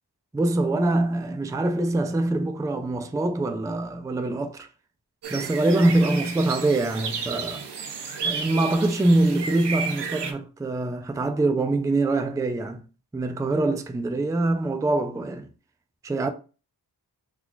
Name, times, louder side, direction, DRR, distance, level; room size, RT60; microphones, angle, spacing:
voice 1, 0.3-4.7 5.3-7.7 8.2-12.8 13.1-15.5 16.0-16.3, right 2 dB, 10° right, 0.3 m, -24 dB
sound 1, 5.2-10.3, right 5 dB, 80° right, 0.7 m, -32 dB
4.0 x 2.3 x 2.9 m
wide cardioid pair, 90°, 41 cm